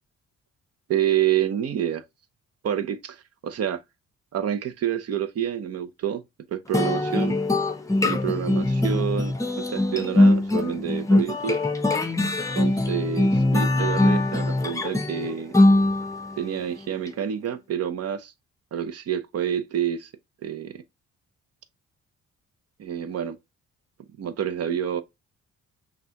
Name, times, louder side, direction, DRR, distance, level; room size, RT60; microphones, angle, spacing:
voice 1, 0.9-2.0 2.6-3.8 4.3-6.2 6.5-7.4 8.0-11.6 12.6-15.5 16.4-18.3 18.7-20.1 20.4-20.8 22.8-23.4 24.2-25.0, right 9 dB, 55° right, 0.7 m, -28 dB
sound 1, 6.7-16.4, left 2 dB, 10° left, 0.6 m, -22 dB
5.8 x 2.3 x 2.8 m
cardioid pair, 90°, 30 cm